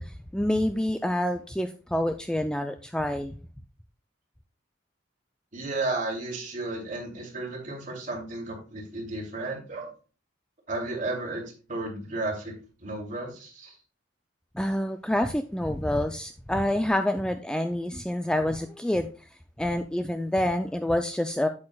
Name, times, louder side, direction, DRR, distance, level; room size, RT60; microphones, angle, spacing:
voice 1, 0.0-3.4 14.5-19.1 19.6-21.5, left 1 dB, 5° left, 7 dB, 0.3 m, -27 dB
voice 2, 5.5-9.9 10.7-11.4 11.7-12.5 12.8-13.7, right 2 dB, 40° right, -1 dB, 2.6 m, -33 dB
8.7 x 8.3 x 2.2 m, 0.36 s
head